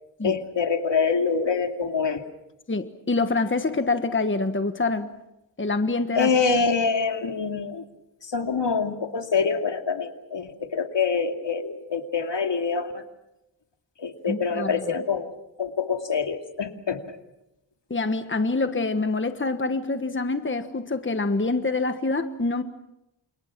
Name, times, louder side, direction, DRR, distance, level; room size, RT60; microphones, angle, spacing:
voice 1, 0.2-2.2 6.1-7.8 8.2-13.0 14.0-15.3 15.6-17.2, left 5 dB, 65° left, 5 dB, 2.6 m, -25 dB
voice 2, 2.7-5.1 5.6-6.3 14.3-14.7 17.9-22.6, left 3 dB, 25° left, 9 dB, 1.4 m, -26 dB
29.5 x 28.0 x 6.1 m, 0.90 s
wide cardioid pair, 75°, 45 cm